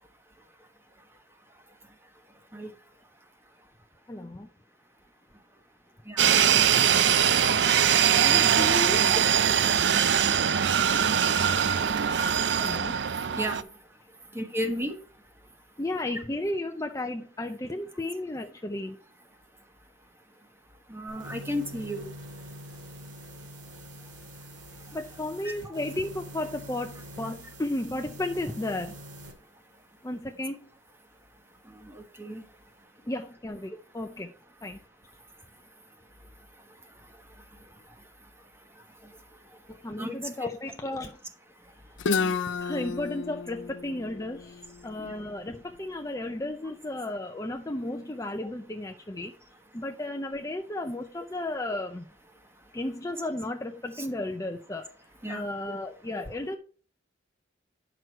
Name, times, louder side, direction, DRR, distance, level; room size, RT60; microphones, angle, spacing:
voice 1, 4.1-4.5 7.9-9.1 12.6-13.0 15.8-19.0 24.9-29.0 30.0-30.7 33.1-34.3 34.6-34.8 39.7-41.2 42.6-49.3 49.7-52.0 52.7-54.9 55.3-56.6, left 1 dB, 15° left, 4 dB, 0.5 m, -34 dB
voice 2, 6.1-6.5 9.0-9.2 12.3-12.4 13.3-13.6 14.3-15.0 20.9-22.1 25.4-25.7 31.7-32.4 40.0-40.1 42.2-42.3 45.0-45.2 53.9-54.1 55.2-55.5, equal, 10° right, 5 dB, 1.2 m, -34 dB
sound 1, 6.2-13.6, right 8 dB, 60° right, 0.5 m, -22 dB
sound 2, 21.1-29.3, equal, 75° right, 2.2 m, -44 dB
Guitar, 42.0-45.8, left 5 dB, 75° left, 0.5 m, -32 dB
9.5 x 6.1 x 4.5 m, 0.42 s
head